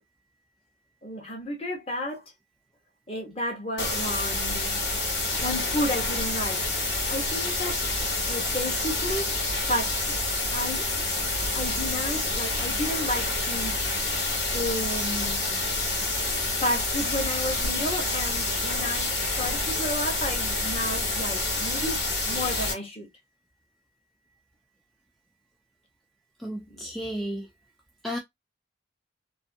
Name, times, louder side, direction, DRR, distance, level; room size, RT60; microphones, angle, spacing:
voice 1, 1.0-2.2 3.1-4.9 5.4-6.7 7.1-7.9 8.3-10.2 10.5-10.9 11.5-13.8 14.5-15.7 16.6-23.1 26.7-26.9, left 1 dB, 35° left, 0.9 m, -32 dB
sound 1, 3.8-22.7, left 2 dB, 85° left, 1.3 m, -28 dB
voice 2, 26.4-27.5 28.0-28.2, equal, ahead, 0.3 m, -33 dB
2.6 x 2.5 x 2.5 m
head